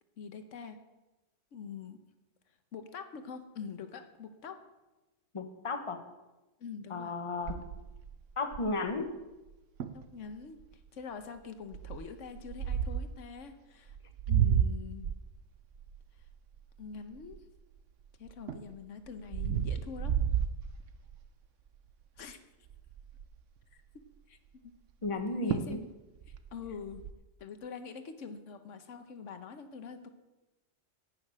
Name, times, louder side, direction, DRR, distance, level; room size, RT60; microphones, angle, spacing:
voice 1, 0.2-0.8 1.5-2.0 2.7-4.6 6.6-7.1 9.9-10.6 10.9-14.0 14.3-15.1 16.8-17.4 18.2-20.2 22.2-22.4 23.7-23.8 24.3-24.4 25.3-25.9 26.3-27.0 27.4-30.1, left 6 dB, 90° left, 8 dB, 1.3 m, -44 dB
voice 2, 5.3-6.0 6.9-7.6 8.4-9.1 25.0-25.8, left 3 dB, 30° left, 6 dB, 1.0 m, -34 dB
sound 1, 7.5-8.9 9.5-9.6 9.8-10.1 10.6-10.9 11.7-13.2 13.9-17.8 18.3-21.3 21.8-22.0 22.3-22.4 22.7-23.4 25.1-25.2 25.5-25.8 26.2-27.1, right 9 dB, 85° right, 1.0 m, -32 dB
11.5 x 6.5 x 8.6 m, 1.1 s
omnidirectional pair, 1.2 m